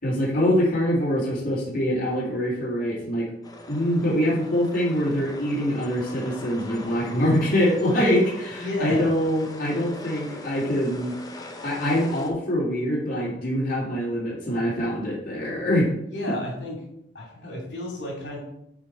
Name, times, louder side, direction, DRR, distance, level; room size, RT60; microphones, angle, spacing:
voice 1, 0.0-3.3 3.7-15.9, equal, 50° left, -7 dB, 2.4 m, -24 dB
sound 1, 3.4-12.3, left 2 dB, 20° left, 0.9 m, -41 dB
voice 2, 8.6-9.1 16.1-16.8 17.1-18.4, left 1 dB, 75° left, -3 dB, 2.9 m, -31 dB
7.3 x 4.6 x 4.5 m, 0.77 s
head